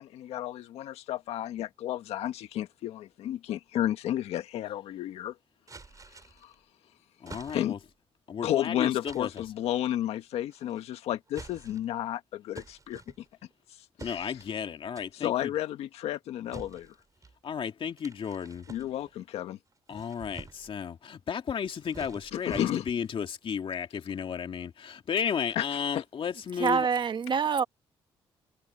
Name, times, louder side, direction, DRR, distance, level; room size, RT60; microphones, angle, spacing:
voice 1, 0.0-5.3 6.4-6.5 7.5-7.7 8.4-13.0 14.0-14.4 15.1-16.9 18.7-19.6 22.3-22.9 25.5-26.0, left 12 dB, 85° left, 1.6 m, -32 dB
sound 1, 5.7-6.5 7.3-7.9 9.0-9.5 10.5-10.9 11.3-12.0 12.5-13.5 14.0-14.6 15.0-15.4 16.5-17.4 18.0-19.2 19.7-20.8 21.5-23.1, right 4 dB, 35° right, 6.0 m, -48 dB
voice 2, 7.2-7.8 8.3-9.3 14.0-15.5 17.4-18.7 19.9-26.9, left 7 dB, 55° left, 2.3 m, -33 dB
voice 3, 26.5-27.6, right 6 dB, 50° right, 1.6 m, -26 dB
cardioid pair, 70°, 10 cm